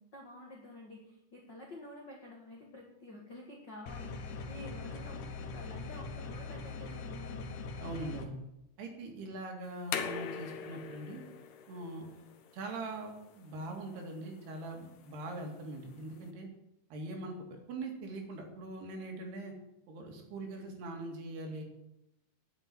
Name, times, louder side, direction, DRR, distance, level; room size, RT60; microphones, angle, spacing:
voice 1, 0.0-7.4, left 1 dB, 50° left, -2 dB, 1.3 m, -50 dB
sound 1, 3.9-8.3, left 4 dB, 90° left, 3.6 m, -42 dB
voice 2, 7.8-8.4 8.8-11.2 11.7-12.1 12.5-16.5 16.9-17.3 17.7-19.5 19.9-21.6, right 2 dB, 70° right, 2 dB, 4.2 m, -42 dB
sound 2, 9.6-16.3, left 7 dB, 75° left, 3.1 m, -44 dB
9.8 x 8.3 x 9.1 m, 0.84 s
omnidirectional pair, 4.9 m